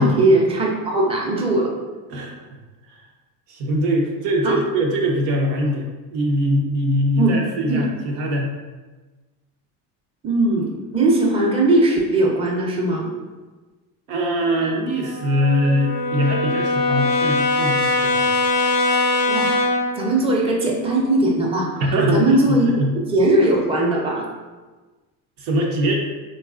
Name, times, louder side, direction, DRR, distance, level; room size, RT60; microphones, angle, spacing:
voice 1, 0.0-1.7 4.4-4.6 7.2-7.4 7.7-7.9 10.2-13.1 19.3-19.6 20.0-21.7 22.1-22.7 23.1-24.3, right 2 dB, 10° right, -3 dB, 0.6 m, -19 dB
voice 2, 3.5-8.5 14.1-18.3 21.8-22.9 25.4-26.0, equal, 75° right, 0 dB, 0.8 m, -22 dB
Brass instrument, 14.5-20.0, left 2 dB, 80° left, 0.5 m, -21 dB
3.8 x 2.3 x 2.4 m, 1.3 s
hypercardioid pair, 75°, 49 cm